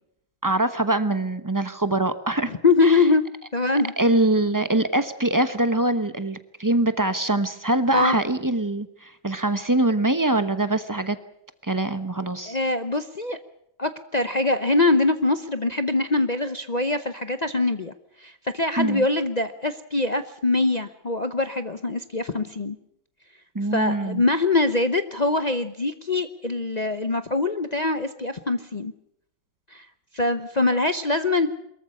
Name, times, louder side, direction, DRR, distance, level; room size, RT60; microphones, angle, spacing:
voice 1, 0.4-2.5 2.8-3.0 4.0-11.2 11.6-12.6 18.8-19.0 23.5-24.2, right 2 dB, 20° right, 11 dB, 0.5 m, -23 dB
voice 2, 2.6-3.2 3.5-3.9 7.9-8.2 12.5-13.4 13.8-22.8 23.7-28.9 29.7-29.9 30.1-31.5, left 3 dB, 65° left, 9 dB, 0.4 m, -23 dB
23.5 x 14.5 x 9.6 m, 0.75 s
omnidirectional pair, 2.1 m